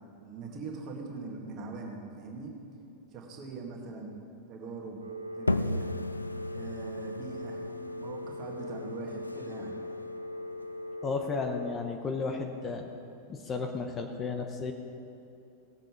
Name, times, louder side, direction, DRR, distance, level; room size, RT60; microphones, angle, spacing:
voice 1, 0.2-2.5 3.1-4.1 4.5-5.0 5.4-5.9 6.5-7.6 8.0-9.7, right 4 dB, 35° right, 0 dB, 2.0 m, -41 dB
Telephone, 5.0-11.7, left 1 dB, 80° right, 1.0 m, -40 dB
sound 1, 5.5-10.9, left 2 dB, 80° left, 0.3 m, -36 dB
voice 2, 11.0-12.8 13.3-14.7, left 4 dB, 25° left, 4 dB, 0.9 m, -33 dB
17.5 x 7.6 x 4.6 m, 2.8 s
figure-of-eight pair, 90°, 0 cm